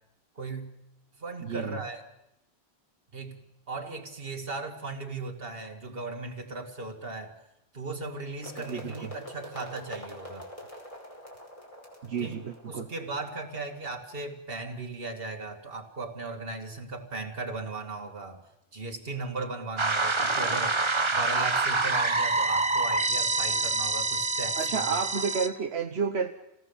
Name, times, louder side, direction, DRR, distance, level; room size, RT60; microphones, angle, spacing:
voice 1, 0.4-0.7 1.2-2.0 3.1-3.4 3.7-7.4 7.7-10.5 12.2-12.4 12.7-18.4 18.7-24.8, right 3 dB, 65° right, 4 dB, 2.4 m, -37 dB
voice 2, 1.4-1.8 8.7-9.1 12.0-12.9 24.6-26.3, right 6 dB, 85° right, 3 dB, 1.4 m, -31 dB
sound 1, 8.4-14.3, equal, 30° left, 5.5 m, -46 dB
sound 2, 19.8-25.5, right 3 dB, 30° right, 1.1 m, -26 dB
28.5 x 18.5 x 7.2 m, 0.84 s
omnidirectional pair, 1.1 m